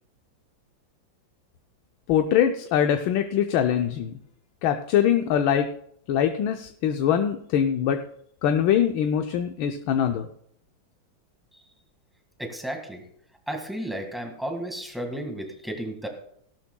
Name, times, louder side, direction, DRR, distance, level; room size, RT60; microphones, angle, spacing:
voice 1, 2.1-4.2 4.6-5.7 6.1-8.0 8.4-10.3, left 9 dB, 80° left, 6 dB, 1.4 m, -23 dB
voice 2, 12.4-13.0 13.5-16.1, right 1 dB, ahead, 3 dB, 1.4 m, -33 dB
17.5 x 12.0 x 2.2 m, 0.69 s
omnidirectional pair, 2.2 m